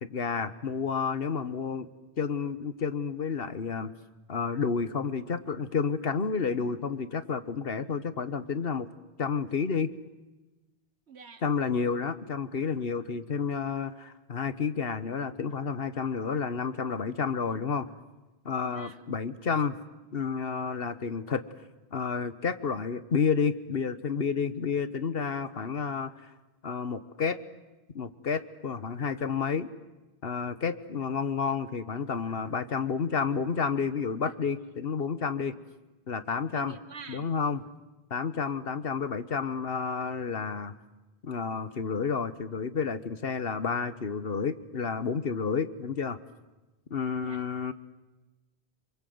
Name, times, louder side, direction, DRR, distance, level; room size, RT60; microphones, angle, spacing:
voice 1, 0.0-1.9 2.2-3.9 4.3-8.9 9.2-9.9 11.4-17.9 18.4-19.8 20.1-21.4 21.9-26.1 26.6-27.4 27.9-29.7 30.2-35.5 36.1-36.8 37.1-37.6 38.1-40.7 41.2-46.2 46.9-47.7, left 5 dB, 60° left, 13 dB, 1.4 m, -30 dB
voice 2, 11.1-11.4 18.6-19.1 34.3-34.4 36.5-37.3 47.2-47.4, right 6 dB, 80° right, 11 dB, 1.7 m, -46 dB
27.5 x 23.5 x 7.9 m, 1.1 s
omnidirectional pair, 1.1 m